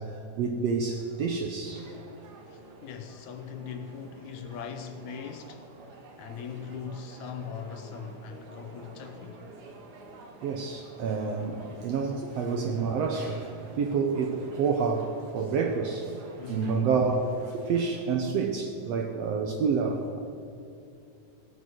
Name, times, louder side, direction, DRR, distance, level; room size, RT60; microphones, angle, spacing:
voice 1, 0.0-1.9 10.4-16.2 16.5-20.2, right 5 dB, 70° right, 1.6 m, -28 dB
sound 1, 1.6-18.1, right 3 dB, 50° right, 1.2 m, -49 dB
voice 2, 2.5-5.7 6.2-9.5 16.4-16.8, left 7 dB, 75° left, 2.0 m, -40 dB
17.5 x 8.1 x 6.4 m
omnidirectional pair, 3.7 m